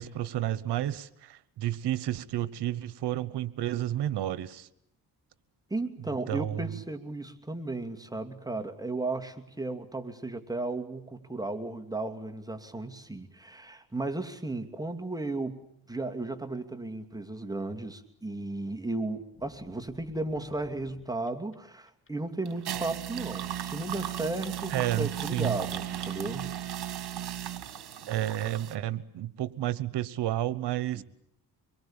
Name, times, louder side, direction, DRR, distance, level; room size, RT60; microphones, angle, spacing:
voice 1, 0.0-4.7 6.3-6.8 24.7-25.6 28.1-31.0, right 13 dB, 90° right, 18 dB, 1.1 m, -31 dB
voice 2, 5.7-26.6 30.9-31.0, right 2 dB, 10° right, 4 dB, 2.7 m, -35 dB
sound 1, 19.3-21.6 21.9-22.3, left 4 dB, 30° left, 2.6 m, -54 dB
sound 2, 22.5-28.8, right 11 dB, 70° right, 2.0 m, -36 dB
25.5 x 22.5 x 8.9 m, 0.74 s
cardioid pair, 85°, 39 cm